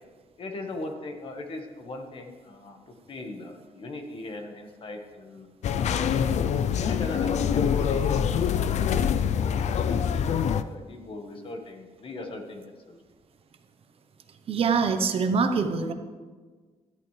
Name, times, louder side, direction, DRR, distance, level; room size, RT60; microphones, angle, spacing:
voice 1, 0.4-5.5 5.8-6.2 6.8-13.0, left 2 dB, 45° left, 4 dB, 1.5 m, -39 dB
sound 1, 5.6-10.6, left 8 dB, 65° left, 0.5 m, -25 dB
voice 2, 14.5-15.9, right 5 dB, 50° right, 6 dB, 1.0 m, -24 dB
17.5 x 13.5 x 3.3 m, 1.4 s
wide cardioid pair, 175°, 13 cm